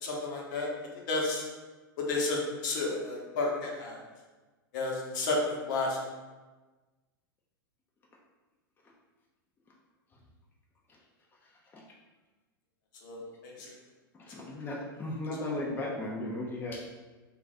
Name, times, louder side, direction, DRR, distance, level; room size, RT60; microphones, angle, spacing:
voice 1, 0.0-0.7 0.9-1.5 2.0-4.0 4.7-6.0 13.0-13.7 15.5-15.6, left 2 dB, 60° left, -1 dB, 0.9 m, -32 dB
voice 2, 14.2-16.8, left 2 dB, 15° left, -3 dB, 0.5 m, -36 dB
2.4 x 2.4 x 4.0 m, 1.2 s
hypercardioid pair, 100°, 12 cm